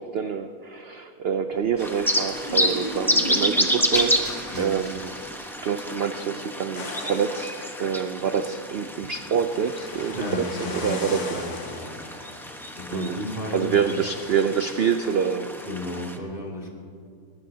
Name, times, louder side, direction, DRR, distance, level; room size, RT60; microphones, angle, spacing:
voice 1, 0.0-4.1 4.6-5.1 5.6-11.4 12.9-13.2 13.5-15.6, right 7 dB, 60° right, 8 dB, 0.7 m, -26 dB
sound 1, 1.8-16.2, equal, ahead, 0.9 m, -30 dB
sound 2, 1.8-5.7, right 1 dB, 25° right, 3.5 m, -35 dB
sound 3, 6.7-15.1, left 3 dB, 80° left, 2.1 m, -40 dB
voice 2, 10.1-11.8 12.8-14.0 15.6-16.7, left 1 dB, 35° left, -2 dB, 2.8 m, -33 dB
21.5 x 16.0 x 2.8 m, 2.4 s
omnidirectional pair, 1.6 m